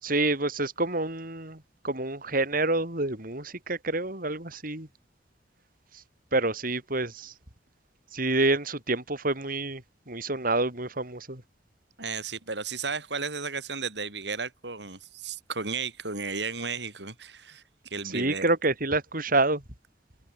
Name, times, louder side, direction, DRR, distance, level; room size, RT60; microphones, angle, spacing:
voice 1, 0.0-4.9 5.9-6.0 6.3-7.3 8.1-11.4 18.0-19.6, right 2 dB, 55° right, 5.9 m, -28 dB
voice 2, 12.0-18.4, right 4 dB, 70° right, 6.5 m, -34 dB
head